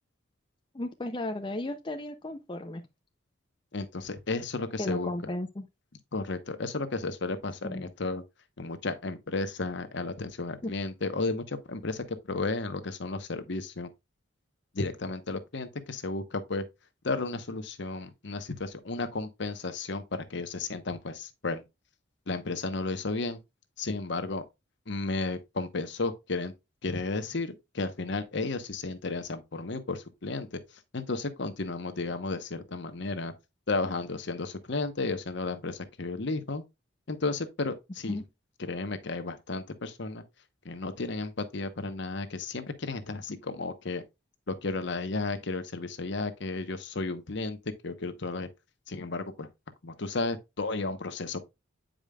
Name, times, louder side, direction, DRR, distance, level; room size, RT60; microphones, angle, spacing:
voice 1, 0.7-2.8 4.8-5.7 7.6-7.9 10.6-10.7 38.1-38.2, left 1 dB, 25° left, 0.5 m, -34 dB
voice 2, 3.7-5.1 6.1-8.2 8.6-13.9 14.7-16.6 17.0-21.6 22.3-23.4 23.8-24.4 24.9-26.5 26.8-30.6 30.9-33.3 33.7-36.6 37.1-38.2 38.6-40.2 40.6-44.0 44.5-48.5 48.9-49.5 49.8-51.4, left 3 dB, 60° left, 0.9 m, -33 dB
8.8 x 5.1 x 2.3 m
head